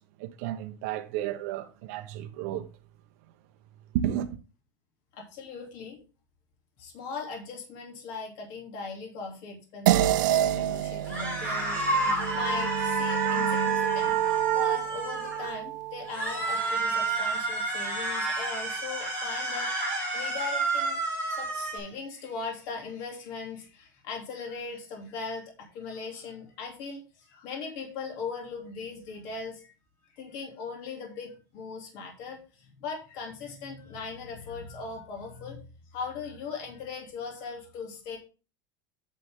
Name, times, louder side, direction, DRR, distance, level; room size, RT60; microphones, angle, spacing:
voice 1, 0.0-2.7 3.9-4.3, right 11 dB, 50° right, 1.0 m, -32 dB
voice 2, 5.1-6.0 6.8-14.2 14.5-21.0 21.3-29.7 30.1-35.6 35.9-38.2, left 4 dB, 40° left, 2.9 m, -39 dB
sound 1, 9.9-14.6, right 13 dB, 70° right, 0.5 m, -29 dB
sound 2, 11.1-15.5 16.1-21.8, right 2 dB, 15° left, 4.0 m, -30 dB
sound 3, 11.7-17.1, right 9 dB, 35° right, 2.8 m, -30 dB
9.0 x 6.6 x 3.7 m
supercardioid pair, 175°, 10 cm